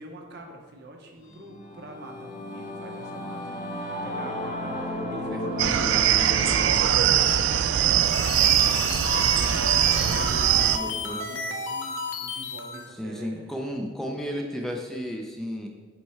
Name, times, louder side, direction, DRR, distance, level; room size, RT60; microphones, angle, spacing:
voice 1, 0.0-3.5 4.0-8.0 8.3-13.5, right 1 dB, 60° right, 1 dB, 1.0 m, -44 dB
Singing / Musical instrument, 1.3-11.0, left 1 dB, 50° left, 1.3 m, -36 dB
sound 1, 5.6-10.8, right 10 dB, 85° right, 0.3 m, -21 dB
sound 2, 7.8-12.9, left 4 dB, 75° left, 0.7 m, -33 dB
voice 2, 10.7-11.3 13.0-15.7, equal, ahead, 1 dB, 0.5 m, -33 dB
7.7 x 3.3 x 4.3 m, 1.4 s
head